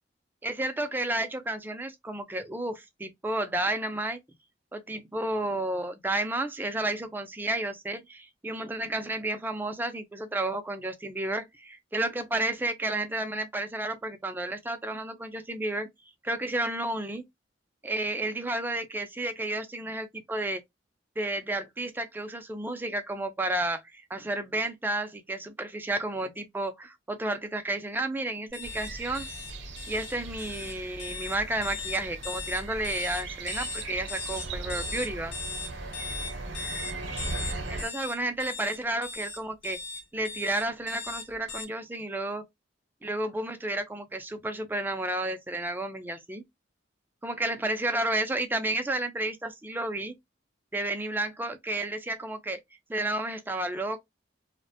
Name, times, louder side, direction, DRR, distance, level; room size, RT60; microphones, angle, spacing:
voice 1, 0.4-4.2 4.7-15.9 16.2-17.2 17.8-20.6 21.2-29.3 29.9-35.3 37.7-39.8 40.1-42.4 43.0-46.4 47.2-50.1 50.7-52.6 52.9-54.0, right 2 dB, 10° right, 0.3 m, -31 dB
sound 1, 28.5-41.6, left 4 dB, 70° left, 0.8 m, -38 dB
sound 2, 28.6-37.9, right 3 dB, 65° right, 0.6 m, -38 dB
2.4 x 2.1 x 2.6 m
head